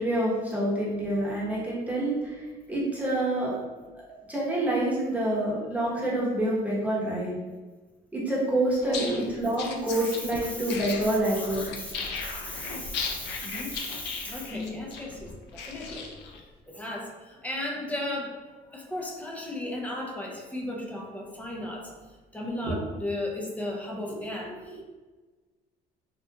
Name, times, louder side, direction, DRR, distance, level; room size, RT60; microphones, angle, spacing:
voice 1, 0.0-3.5 4.3-7.3 8.1-11.7 14.5-14.8 22.4-22.7 24.1-24.2, right 1 dB, 10° right, -6 dB, 0.9 m, -27 dB
sound 1, 8.8-16.4, left 4 dB, 85° left, 0.4 m, -37 dB
voice 2, 11.6-11.9 12.2-16.1 16.7-18.3 18.7-21.9 22.3-24.8, left 1 dB, 10° left, -1 dB, 0.5 m, -35 dB
2.8 x 2.3 x 2.2 m, 1.3 s
cardioid pair, 110°, 17 cm